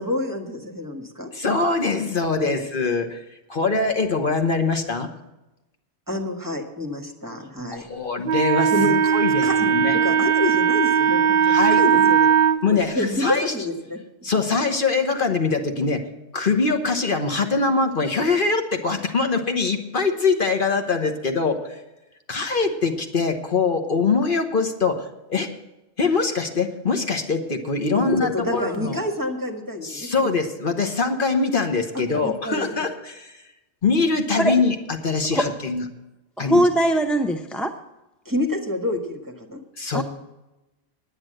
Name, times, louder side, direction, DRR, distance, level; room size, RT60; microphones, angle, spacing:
voice 1, 0.0-1.3 2.4-2.5 6.1-7.9 8.7-9.1 9.4-12.3 12.7-14.0 27.9-30.1 31.9-32.7 38.2-39.6, left 1 dB, 15° right, 4 dB, 1.5 m, -28 dB
voice 2, 1.3-3.2 3.5-5.1 7.7-8.7 9.1-9.9 11.4-11.8 12.6-13.5 14.2-16.0 16.3-21.8 22.3-25.5 26.0-29.0 29.8-33.3 33.8-35.8 36.4-36.6 39.8-40.0, left 4 dB, 50° left, 5 dB, 1.3 m, -23 dB
Wind instrument woodwind instrument, 8.2-12.6, right 8 dB, 60° right, 0.8 m, -18 dB
voice 3, 36.4-37.7 39.9-40.0, right 1 dB, ahead, 6 dB, 0.4 m, -20 dB
9.7 x 9.6 x 7.7 m, 0.98 s
omnidirectional pair, 1.2 m